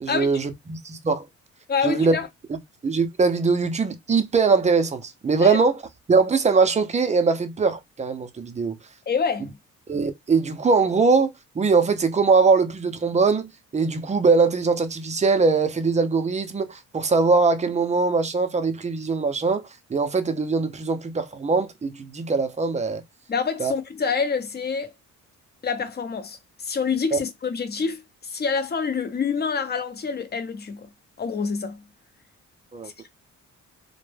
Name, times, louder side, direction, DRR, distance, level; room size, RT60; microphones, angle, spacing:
voice 1, 0.0-1.2 1.8-2.1 2.5-2.6 2.8-5.8 6.1-8.8 9.9-11.3 11.5-19.6 19.9-23.0 23.6-23.7 27.1-27.2 32.7-32.9, right 4 dB, 25° right, 0.5 m, -21 dB
voice 2, 1.7-2.3 5.4-5.6 9.1-9.6 23.3-24.9 25.6-30.9 31.2-31.8, left 5 dB, 35° left, 0.6 m, -27 dB
2.1 x 2.1 x 3.2 m
cardioid pair, 90°, 30 cm